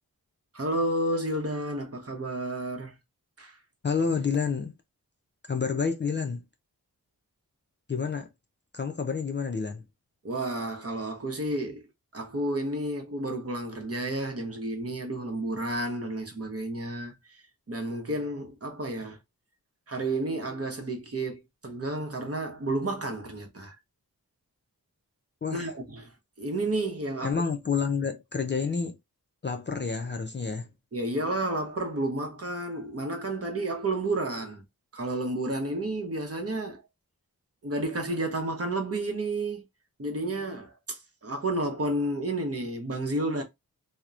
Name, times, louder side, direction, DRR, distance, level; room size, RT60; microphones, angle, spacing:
voice 1, 0.5-2.9 3.4-3.6 10.2-11.9 12.1-19.2 19.9-23.8 25.5-26.1 26.4-27.4 30.9-34.6 34.9-36.8 37.6-39.6 40.0-43.4, right 1 dB, 40° right, 0.8 m, -31 dB
voice 2, 3.8-4.7 5.5-6.4 7.9-8.3 8.7-9.8 25.4-25.7 27.2-29.0 29.4-30.7, left 5 dB, 30° left, 0.4 m, -29 dB
2.8 x 2.1 x 2.4 m
wide cardioid pair, 60°, 37 cm